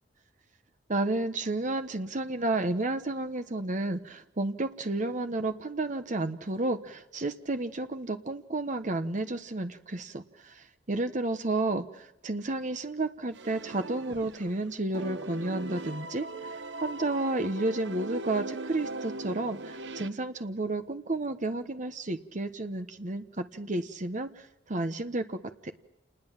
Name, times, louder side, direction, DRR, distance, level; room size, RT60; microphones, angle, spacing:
voice 1, 0.9-25.7, right 2 dB, 45° right, 8 dB, 1.1 m, -32 dB
sound 1, 13.3-14.6 14.9-20.1, right 2 dB, 70° right, 1.0 m, -39 dB
29.0 x 20.0 x 7.4 m, 0.90 s
head